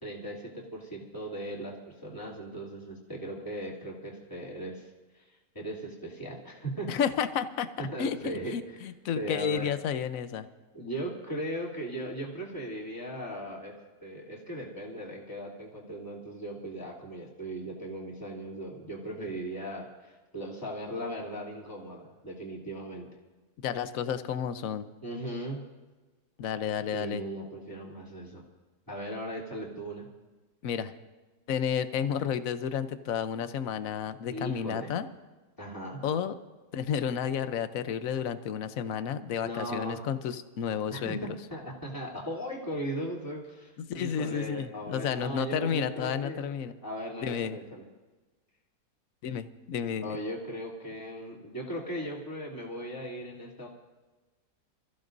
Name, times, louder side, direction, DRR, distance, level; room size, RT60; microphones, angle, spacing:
voice 1, 0.0-5.3 5.5-6.9 7.8-8.6 9.1-9.7 10.7-13.8 14.0-23.1 25.0-25.6 26.9-28.4 28.9-30.1 34.3-34.9 35.6-36.0 39.4-40.1 40.9-46.5 46.8-47.8 50.0-53.7, right 1 dB, 10° left, -4 dB, 3.1 m, -38 dB
voice 2, 6.9-7.7 8.0-10.5 19.2-19.3 23.6-24.9 26.4-27.2 30.6-30.9 31.5-35.1 36.0-36.3 36.7-41.3 43.9-46.7 47.2-47.6 49.2-50.2, left 8 dB, 60° left, 10 dB, 1.2 m, -31 dB
28.5 x 15.0 x 2.7 m, 1.2 s
omnidirectional pair, 1.7 m